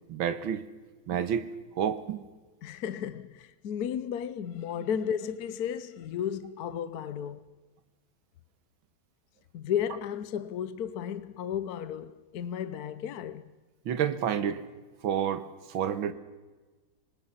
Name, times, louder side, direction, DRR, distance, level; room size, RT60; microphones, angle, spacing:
voice 1, 0.1-0.7 1.1-1.5 1.8-2.3 13.9-14.6 15.0-16.1, right 8 dB, 80° right, 1.9 m, -29 dB
voice 2, 2.6-7.5 9.5-13.5, left 9 dB, 60° left, 1.1 m, -34 dB
25.5 x 19.5 x 5.6 m
omnidirectional pair, 2.2 m